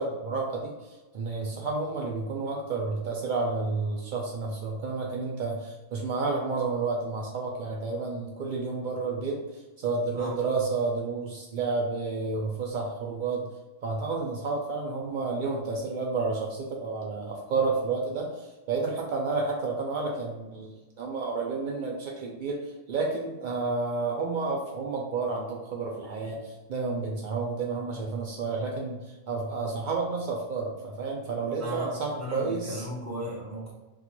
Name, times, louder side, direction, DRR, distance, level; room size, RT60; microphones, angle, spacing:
voice 1, 0.0-13.5 13.8-32.9, right 4 dB, 85° right, -1 dB, 0.4 m, -31 dB
voice 2, 31.6-33.7, equal, 15° right, -4 dB, 0.6 m, -36 dB
3.7 x 2.4 x 2.9 m, 1.2 s
omnidirectional pair, 1.4 m